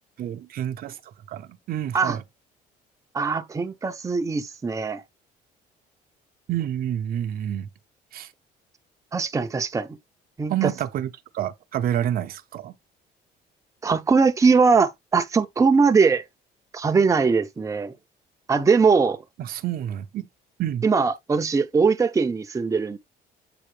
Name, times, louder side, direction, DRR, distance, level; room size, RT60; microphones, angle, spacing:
voice 1, 0.2-1.0 1.3-2.2 6.5-7.7 8.1-8.3 10.5-11.1 11.3-12.7 19.4-20.3 20.6-20.9, right 11 dB, 60° right, 0.8 m, -28 dB
voice 2, 3.1-5.0 9.1-10.0 10.4-10.7 13.8-16.2 16.7-17.9 18.5-19.2 20.8-23.0, right 5 dB, 20° right, 0.7 m, -21 dB
7.8 x 4.2 x 3.3 m
cardioid pair, 110°, 17 cm